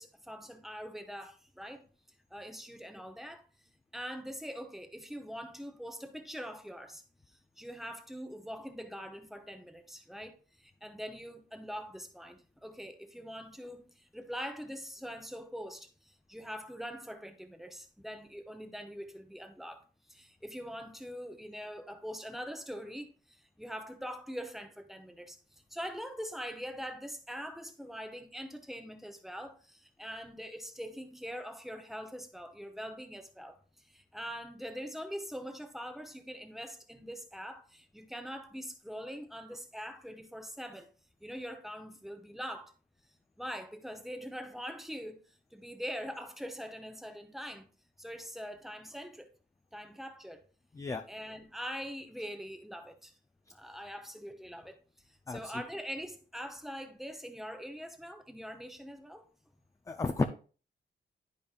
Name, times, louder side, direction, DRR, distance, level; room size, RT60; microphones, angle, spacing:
voice 1, 0.0-1.9 2.3-3.5 3.9-7.0 7.6-40.9 41.2-42.7 43.4-45.2 45.5-47.7 48.0-49.3 49.7-50.4 51.1-53.1 53.5-54.8 55.1-59.2, equal, ahead, 0.8 m, -43 dB
voice 2, 59.9-60.2, left 3 dB, 15° left, 0.4 m, -32 dB
10.0 x 5.2 x 2.4 m
wide cardioid pair, 145°, 19 cm